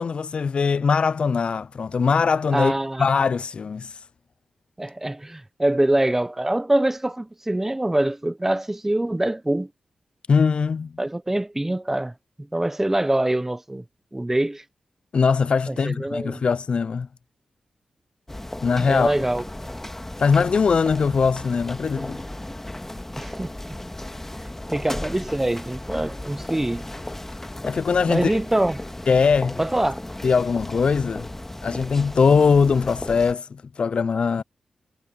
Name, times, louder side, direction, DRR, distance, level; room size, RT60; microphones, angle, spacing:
voice 1, 0.0-2.7 3.0-3.9 10.3-10.9 15.1-17.1 18.6-19.1 20.2-22.2 27.6-28.3 29.1-29.6 30.2-31.3 31.6-34.4, left 5 dB, 60° left, 0.3 m, -21 dB
voice 2, 2.5-3.1 4.8-9.7 11.0-12.1 12.5-13.8 14.1-14.6 15.7-16.4 18.8-19.7 23.2-23.5 24.3-26.9 28.1-28.8 29.6-30.0, right 1 dB, 15° right, 0.9 m, -24 dB
sound 1, 18.3-33.3, left 1 dB, 15° left, 1.7 m, -35 dB
cardioid pair, 50°, 2 cm